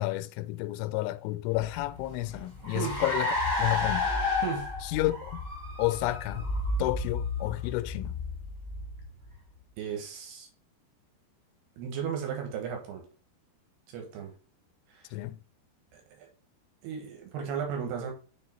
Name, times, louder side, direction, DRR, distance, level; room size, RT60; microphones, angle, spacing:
voice 1, 0.0-4.1 4.9-5.4 5.8-6.5 6.8-8.2 15.1-15.4, left 17 dB, 90° left, 3.0 m, -31 dB
Car, 1.6-9.4, left 3 dB, 20° right, 0.7 m, -32 dB
voice 2, 4.4-4.7 9.8-10.5 11.8-13.0 13.9-14.3 14.9-15.1 15.9-16.3 16.8-18.1, right 7 dB, 70° right, 2.9 m, -35 dB
6.3 x 4.6 x 4.3 m
omnidirectional pair, 5.3 m